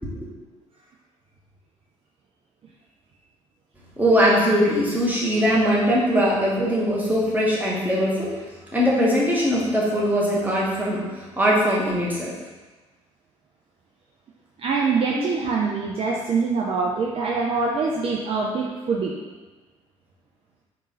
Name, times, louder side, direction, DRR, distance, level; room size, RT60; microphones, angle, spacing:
voice 1, 4.0-8.3 8.7-12.3 15.2-15.3, equal, 10° right, -6 dB, 1.2 m, -21 dB
voice 2, 14.6-19.2, right 4 dB, 40° right, -2 dB, 0.5 m, -24 dB
3.6 x 2.5 x 4.1 m, 1.2 s
figure-of-eight pair, 50°, 15 cm